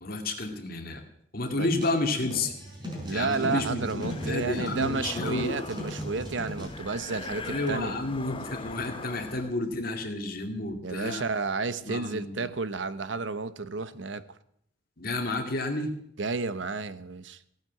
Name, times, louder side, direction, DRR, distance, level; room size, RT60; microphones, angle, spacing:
voice 1, 0.0-1.0 1.3-2.5 3.1-5.6 7.4-11.2 11.9-12.5 15.0-15.9, left 2 dB, 50° left, 2.4 m, -31 dB
sound 1, 1.5-6.7, equal, 25° right, 5.1 m, -38 dB
voice 2, 3.0-8.0 10.8-14.2 16.2-17.4, right 4 dB, 70° right, 0.9 m, -31 dB
sound 2, 4.0-9.5, left 3 dB, 30° left, 0.8 m, -41 dB
16.5 x 9.4 x 7.7 m
head